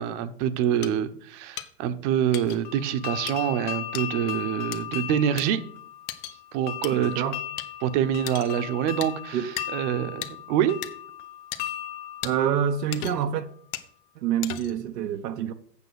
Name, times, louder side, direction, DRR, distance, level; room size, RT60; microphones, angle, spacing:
voice 1, 0.0-5.6 6.5-7.2 7.8-9.4 9.7-10.9, right 9 dB, 45° right, 1.0 m, -26 dB
sound 1, 0.8-0.9 1.6-1.7 2.3-2.6 3.3-3.4 3.9-4.1 4.7-4.8 5.4-5.5 6.1-6.4 6.8-6.9 7.6-7.7 8.3-8.5 9.0-9.1 9.6-9.7 10.2-10.3 10.8-10.9 11.5-11.6 12.2-12.3 12.9-13.3 13.7-13.9 14.4-14.8, left 12 dB, 60° left, 1.1 m, -35 dB
sound 2, 2.6-13.5, left 12 dB, 20° left, 0.7 m, -37 dB
voice 2, 6.9-7.4 9.3-9.5 12.2-13.5 14.2-15.5, right 9 dB, 75° right, 0.9 m, -27 dB
8.4 x 6.1 x 6.3 m
hypercardioid pair, 125°, 49 cm